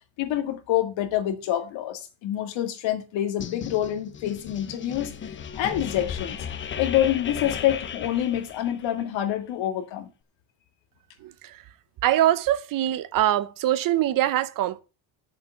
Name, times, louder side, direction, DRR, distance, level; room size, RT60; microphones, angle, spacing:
voice 1, 0.2-5.1 5.6-6.4 6.8-10.1, left 12 dB, 75° left, 2.0 m, -26 dB
sound 1, 3.4-9.0, left 7 dB, 25° left, 0.6 m, -35 dB
voice 2, 11.2-11.6 12.0-14.8, right 13 dB, 45° right, 0.7 m, -23 dB
8.6 x 7.2 x 6.5 m
cardioid pair, 175°, 45 cm